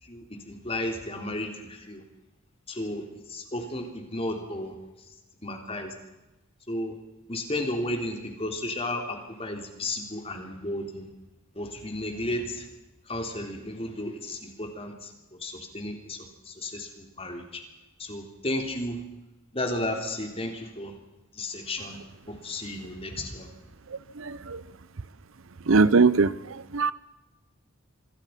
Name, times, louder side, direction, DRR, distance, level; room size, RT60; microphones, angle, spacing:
voice 1, 0.0-2.0 2.7-4.8 5.4-5.9 6.7-7.0 7.3-11.1 11.6-12.7 13.1-15.1 15.4-17.6 18.0-19.0 19.5-20.9 21.3-22.0 22.3-23.5, left 1 dB, 25° left, 4 dB, 3.4 m, -33 dB
voice 2, 25.7-26.3 26.7-26.9, right 4 dB, 65° right, 17 dB, 0.7 m, -19 dB
26.5 x 21.5 x 5.8 m, 1.0 s
head